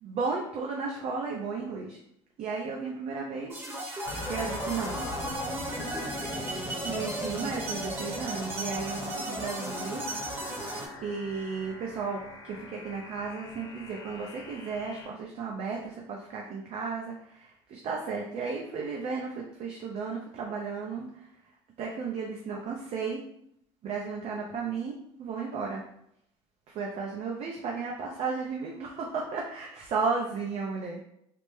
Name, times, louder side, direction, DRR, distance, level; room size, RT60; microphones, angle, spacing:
voice 1, 0.0-2.0 2.4-3.7 4.3-5.0 6.8-10.0 11.0-21.3 21.8-23.2 23.8-25.8 26.7-31.0, right 4 dB, 55° right, -1 dB, 0.5 m, -34 dB
sound 1, 3.5-10.9, right 1 dB, 20° right, 0.9 m, -35 dB
sound 2, 4.1-9.1, left 2 dB, 70° left, 0.7 m, -42 dB
voice 2, 4.7-7.0, left 3 dB, 15° left, 0 dB, 0.3 m, -44 dB
sound 3, 5.1-15.1, left 2 dB, 30° left, 0.9 m, -47 dB
3.3 x 2.0 x 3.1 m, 0.75 s
supercardioid pair, 85°, 13 cm